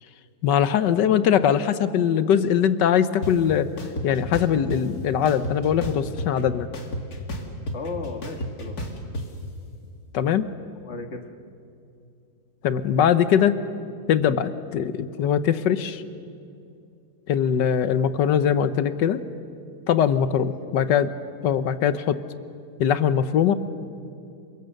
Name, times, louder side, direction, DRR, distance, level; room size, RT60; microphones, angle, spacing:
voice 1, 0.4-3.7 4.0-6.7 10.1-10.5 12.6-13.6 14.1-16.0 17.3-19.2 19.9-21.1 21.4-22.2 22.8-23.5, left 8 dB, 85° left, 13 dB, 1.5 m, -21 dB
sound 1, 3.2-3.3 3.8-4.8 5.3-6.4 6.7-9.3, equal, 60° left, 2.7 m, -31 dB
voice 2, 7.7-8.8 10.7-11.3 20.7-21.0, left 3 dB, 40° left, 5 dB, 1.9 m, -35 dB
28.5 x 23.5 x 6.6 m, 2.6 s
omnidirectional pair, 1.8 m